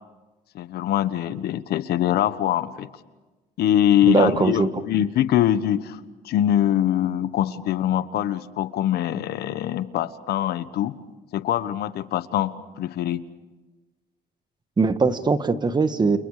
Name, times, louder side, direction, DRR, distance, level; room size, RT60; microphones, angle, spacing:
voice 1, 0.5-2.9 3.6-6.0 6.2-10.9 11.3-12.5 12.8-13.2, left 11 dB, 70° left, 13 dB, 1.3 m, -23 dB
voice 2, 4.1-4.7 14.8-16.2, right 4 dB, 25° right, 11 dB, 1.5 m, -20 dB
29.5 x 29.5 x 5.0 m, 1.2 s
cardioid pair, 110°, 17 cm